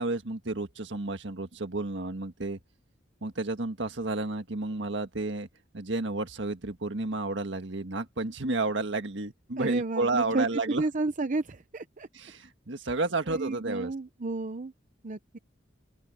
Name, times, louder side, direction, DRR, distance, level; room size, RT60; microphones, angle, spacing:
voice 1, 0.0-2.6 3.2-5.5 5.7-10.8 12.1-13.9, right 2 dB, 70° right, 1.7 m, -31 dB
voice 2, 9.6-12.1 13.3-14.7 15.0-15.4, right 2 dB, 45° right, 0.8 m, -31 dB
open air
head